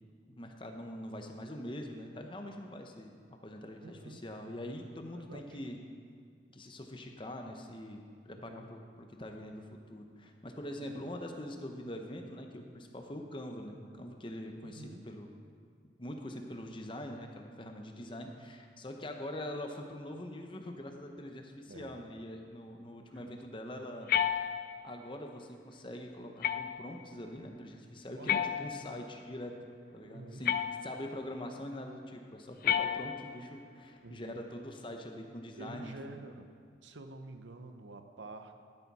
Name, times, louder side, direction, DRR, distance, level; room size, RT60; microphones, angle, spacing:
voice 1, 0.4-3.1 3.4-5.8 6.5-8.8 9.2-15.3 16.0-24.1 24.8-29.5 29.9-30.6 30.8-36.2, left 1 dB, 25° left, 3 dB, 0.8 m, -43 dB
voice 2, 3.8-4.2 5.1-5.6 8.3-8.7 10.8-11.0 14.6-15.1 18.1-18.5 21.7-22.0 23.1-23.3 28.2-28.5 30.0-30.4 34.0-34.4 35.6-36.6 36.8-38.5, right 2 dB, 80° right, 7 dB, 0.8 m, -49 dB
sound 1, 24.1-25.0 26.4-27.0 28.3-29.1 30.5-31.2 32.6-33.5, left 9 dB, 50° left, 0.3 m, -32 dB
12.5 x 10.5 x 4.2 m, 2.2 s
head